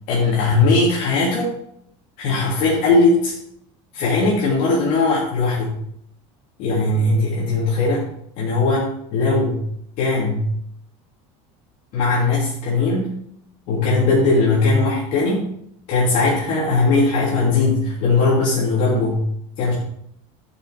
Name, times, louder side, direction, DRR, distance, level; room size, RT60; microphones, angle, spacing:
voice 1, 0.1-1.5 2.2-3.3 3.9-5.8 6.6-8.0 8.4-9.6 10.0-10.5 11.9-13.1 13.7-15.5 15.9-19.2 19.6-19.7, left 3 dB, 50° left, -6 dB, 3.2 m, -19 dB
11.5 x 7.1 x 5.1 m, 0.73 s
cardioid pair, 165°, 16 cm